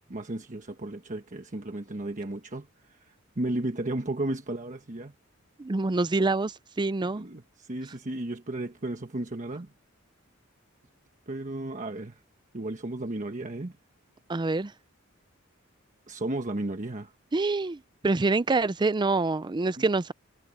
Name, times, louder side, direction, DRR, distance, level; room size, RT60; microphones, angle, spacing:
voice 1, 0.1-5.1 7.1-9.7 11.3-12.2 12.5-13.8 16.1-17.1 19.8-19.9, right 2 dB, 40° right, 1.2 m, -34 dB
voice 2, 5.6-7.2 14.3-14.7 17.3-20.1, right 3 dB, 20° right, 0.5 m, -26 dB
head